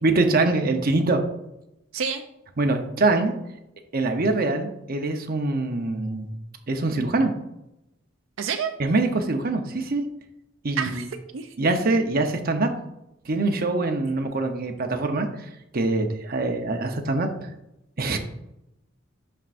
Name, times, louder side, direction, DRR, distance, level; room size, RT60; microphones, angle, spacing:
voice 1, 0.0-1.2 2.6-3.3 3.9-6.3 6.7-7.3 8.8-10.1 10.6-11.1 11.6-12.7 13.3-17.5 18.0-18.2, right 2 dB, 50° right, 5 dB, 0.8 m, -24 dB
voice 2, 8.4-8.7 10.8-11.0 11.3-11.5, right 6 dB, 80° right, 6 dB, 0.5 m, -28 dB
11.5 x 4.5 x 2.5 m, 0.87 s
head